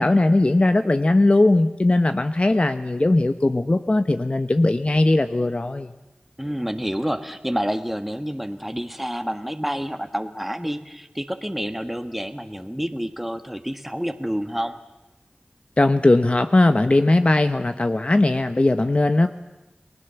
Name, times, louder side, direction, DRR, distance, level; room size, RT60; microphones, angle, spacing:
voice 1, 0.0-5.9 15.8-19.3, left 2 dB, 40° left, 9 dB, 1.0 m, -19 dB
voice 2, 6.4-14.8, equal, 5° right, 7 dB, 1.6 m, -28 dB
30.0 x 20.0 x 7.1 m, 1.0 s
wide cardioid pair, 50°, 3 cm